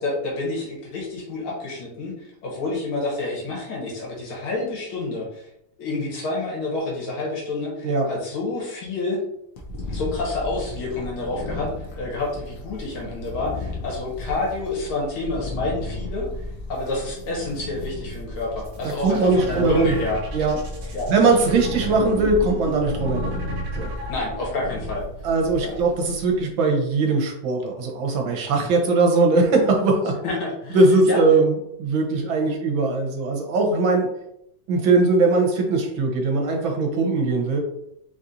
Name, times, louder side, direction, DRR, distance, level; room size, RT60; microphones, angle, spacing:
voice 1, 0.0-5.5 5.8-9.2 9.9-11.7 12.0-16.3 16.7-20.2 20.9-21.1 24.1-25.0 25.6-25.7 30.2-30.8 31.1-31.2, left 2 dB, 85° left, -3 dB, 2.1 m, -28 dB
sound 1, 9.6-26.4, left 1 dB, 55° left, 1.0 m, -34 dB
sound 2, 18.5-24.8, right 3 dB, 55° right, 1.4 m, -37 dB
voice 2, 19.0-19.9 20.3-20.6 20.8-23.4 23.7-23.9 25.2-30.2 30.7-34.1 34.7-37.6, right 3 dB, 70° right, 1 dB, 1.6 m, -20 dB
4.3 x 4.2 x 2.6 m, 0.78 s
omnidirectional pair, 2.3 m